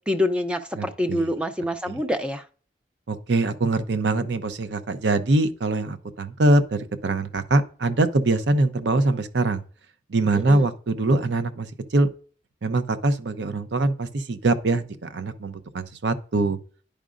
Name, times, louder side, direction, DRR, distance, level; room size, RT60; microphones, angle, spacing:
voice 1, 0.1-2.4 10.5-10.7, left 1 dB, 5° right, 0.5 m, -26 dB
voice 2, 0.8-1.3 1.9-2.0 3.1-9.6 10.1-12.1 12.6-16.6, right 2 dB, 85° right, 0.7 m, -23 dB
10.5 x 5.0 x 2.4 m
head